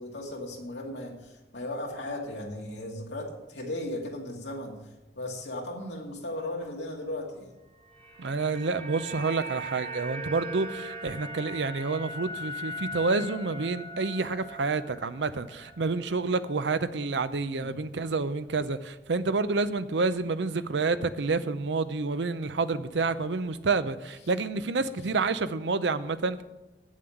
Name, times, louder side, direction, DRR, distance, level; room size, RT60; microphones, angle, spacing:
voice 1, 0.0-4.8 5.2-7.5 17.5-17.8, left 1 dB, 75° left, -1 dB, 2.4 m, -36 dB
sound 1, 7.7-16.0 16.3-16.5, equal, 30° right, 1.5 m, -40 dB
voice 2, 8.2-26.4, right 4 dB, 80° right, 13 dB, 0.6 m, -29 dB
8.7 x 7.4 x 7.8 m, 1.0 s
head